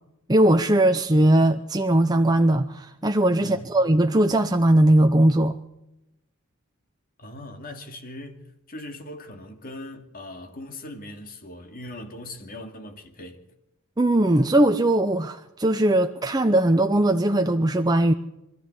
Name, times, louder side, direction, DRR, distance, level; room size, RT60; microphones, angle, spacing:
voice 1, 0.3-5.6 14.0-18.1, right 1 dB, 20° right, 0.7 m, -19 dB
voice 2, 3.4-3.7 7.2-8.4 8.7-13.4, left 1 dB, 45° left, 2.6 m, -40 dB
24.0 x 13.5 x 8.2 m
head